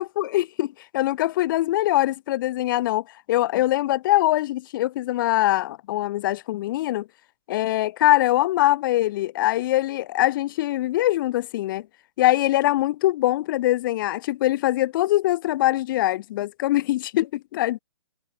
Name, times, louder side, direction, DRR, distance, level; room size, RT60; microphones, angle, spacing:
voice 1, 0.0-7.1 7.5-11.9 12.2-17.8, left 15 dB, 40° left, 4.2 m, -23 dB
hypercardioid pair, 150°, 17 cm